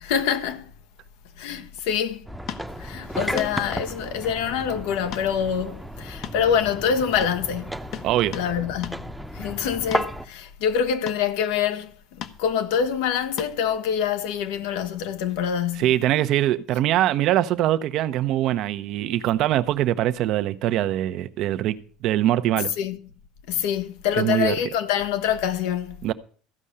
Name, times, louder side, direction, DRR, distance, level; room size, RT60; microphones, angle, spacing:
voice 1, 0.0-0.6 1.4-2.2 2.8-7.7 8.3-11.9 12.2-16.0 22.8-23.0 23.5-26.0, left 8 dB, 80° left, 1.5 m, -25 dB
sound 1, 2.3-10.3, equal, ahead, 0.9 m, -33 dB
sound 2, 2.5-2.7 3.4-3.5 5.1-5.3 5.6-5.7 6.2-6.9 7.2-7.4 7.9-8.5 8.8-9.0 9.9-10.1 11.1-11.3 12.2-12.4 13.4-13.6 15.3-15.4, left 10 dB, 65° left, 1.2 m, -36 dB
voice 2, 8.0-8.4 15.7-22.7 24.1-24.6 26.0-26.1, right 13 dB, 65° right, 0.9 m, -23 dB
14.5 x 5.5 x 8.7 m
supercardioid pair, 95°, 0 cm